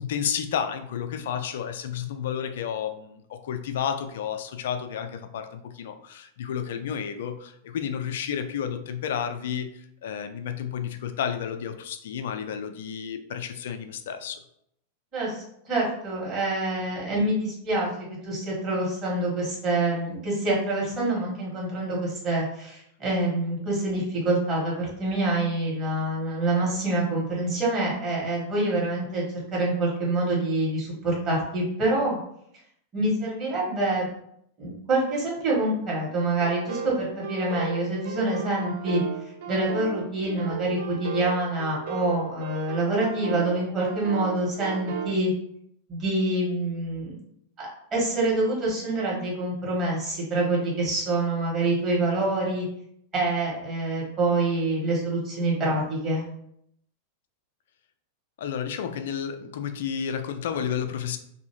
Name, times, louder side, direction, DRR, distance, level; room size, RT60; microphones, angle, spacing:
voice 1, 0.0-14.4 58.4-61.2, left 8 dB, 55° left, 8 dB, 0.3 m, -31 dB
voice 2, 15.1-29.2 29.5-32.2 32.9-34.1 34.6-39.0 39.5-45.3 45.9-47.1 47.6-52.7 53.1-56.2, right 2 dB, 30° right, -5 dB, 1.4 m, -26 dB
sound 1, 36.4-45.1, right 6 dB, 55° right, 0.4 m, -35 dB
2.6 x 2.6 x 2.9 m, 0.72 s
figure-of-eight pair, 90°, 0 cm